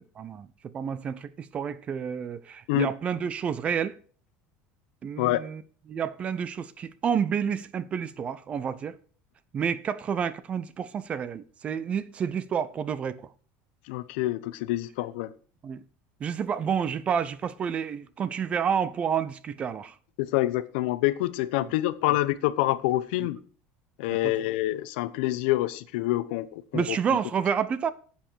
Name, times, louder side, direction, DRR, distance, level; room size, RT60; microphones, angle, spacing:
voice 1, 0.2-4.0 5.0-5.6 5.9-8.9 9.5-13.3 15.6-15.8 16.2-19.9 21.6-21.7 26.7-27.9, right 7 dB, 20° right, 0.5 m, -29 dB
voice 2, 13.9-15.3 20.2-23.4 24.0-27.0, left 16 dB, 75° left, 0.8 m, -27 dB
10.0 x 7.9 x 4.5 m
cardioid pair, 180°, 6 cm